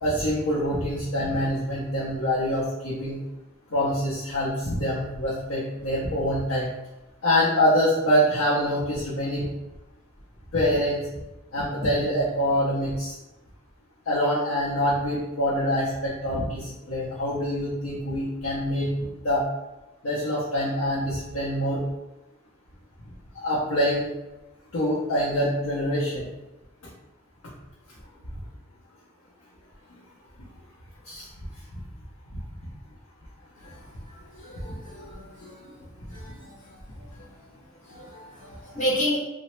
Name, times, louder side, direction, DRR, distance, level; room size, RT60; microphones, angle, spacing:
voice 1, 0.0-3.2 3.7-6.7 7.2-9.4 10.5-11.0 11.5-13.1 14.1-19.4 20.0-21.8 23.4-24.1 24.7-26.3 31.1-31.3, equal, 80° left, -8 dB, 0.7 m, -25 dB
voice 2, 33.6-37.5 37.8-39.2, equal, 40° left, -5 dB, 0.8 m, -33 dB
2.9 x 2.0 x 3.1 m, 1.0 s
head